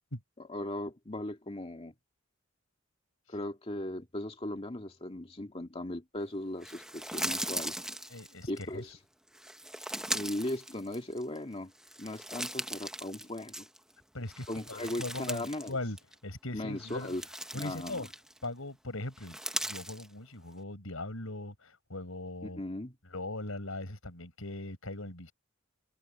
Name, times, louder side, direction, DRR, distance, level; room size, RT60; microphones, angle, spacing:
voice 1, 0.4-1.9 3.3-7.8 8.5-9.0 10.1-11.7 12.0-13.7 14.5-15.8 16.5-17.2 17.5-18.1 22.6-22.9, left 1 dB, 30° left, 2.3 m, -38 dB
sound 1, 6.6-8.6 9.3-11.4 11.7-13.9 14.3-15.7 16.0-16.1 16.8-18.4 19.1-20.1, right 1 dB, 5° right, 1.0 m, -39 dB
voice 2, 8.1-8.9 14.1-16.0 16.2-17.1 17.5-18.1 18.4-19.4 19.6-22.6 23.1-25.3, left 2 dB, 85° left, 5.7 m, -40 dB
head